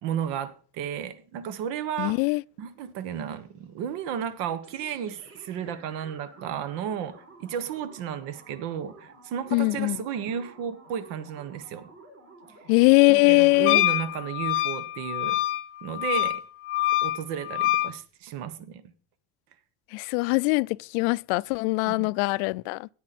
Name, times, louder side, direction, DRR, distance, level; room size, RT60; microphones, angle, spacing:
voice 1, 0.0-2.2 2.6-7.1 7.4-11.9 13.1-15.4 15.8-16.4 17.0-18.8 21.9-22.1, right 8 dB, 65° right, 1.4 m, -33 dB
voice 2, 2.0-2.4 9.5-10.0 12.7-13.8 19.9-22.9, left 26 dB, 90° left, 0.5 m, -22 dB
sound 1, 4.6-14.5, right 2 dB, 35° right, 6.0 m, -51 dB
Wind instrument woodwind instrument, 13.7-17.9, left 15 dB, 30° left, 0.5 m, -26 dB
17.0 x 11.0 x 4.3 m
cardioid pair, 170°, 43 cm